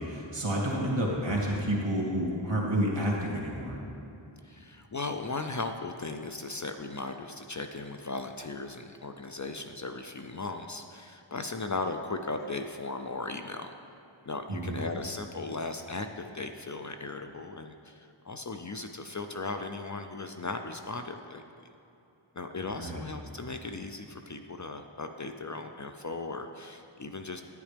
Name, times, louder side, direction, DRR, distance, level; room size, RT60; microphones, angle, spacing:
voice 1, 0.0-3.8 14.5-14.8 22.7-23.1, right 1 dB, 60° right, -3 dB, 2.1 m, -30 dB
voice 2, 4.4-13.7 14.2-21.7 22.3-27.4, left 3 dB, 40° left, 6 dB, 0.5 m, -37 dB
10.0 x 9.7 x 3.4 m, 2.8 s
wide cardioid pair, 50°, 49 cm